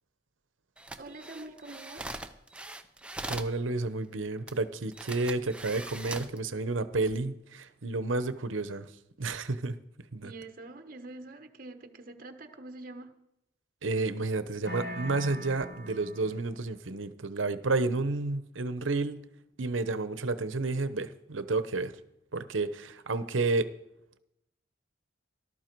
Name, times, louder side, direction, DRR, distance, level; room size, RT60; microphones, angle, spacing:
sound 1, 0.8-3.6 4.5-4.6 4.9-6.4 6.9-7.2, right 2 dB, 5° right, 0.7 m, -41 dB
voice 1, 1.0-2.3 10.2-13.1, right 2 dB, 45° right, 7 dB, 1.2 m, -45 dB
voice 2, 3.3-8.9 9.2-9.7 10.1-10.3 13.8-19.3 19.6-21.9 22.3-23.7, right 3 dB, 85° right, 13 dB, 0.9 m, -31 dB
sound 2, 14.6-16.6, equal, 60° left, 7.9 m, -40 dB
18.5 x 12.5 x 4.6 m, 0.84 s
head